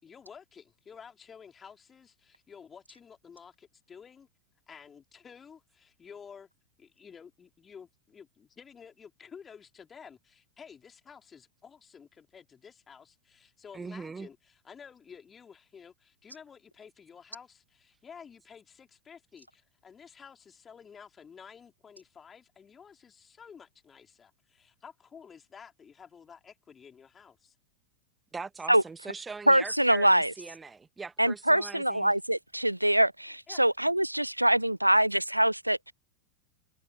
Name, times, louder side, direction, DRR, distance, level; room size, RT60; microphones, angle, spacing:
voice 1, 0.0-4.3 4.7-6.5 6.8-27.5 33.5-33.6, left 6 dB, 20° left, 4.2 m, -51 dB
voice 2, 13.7-14.3 28.3-32.1, right 4 dB, 15° right, 1.4 m, -41 dB
voice 3, 29.5-30.3 31.2-35.9, right 1 dB, 85° right, 0.4 m, -24 dB
figure-of-eight pair, 90°, 0 cm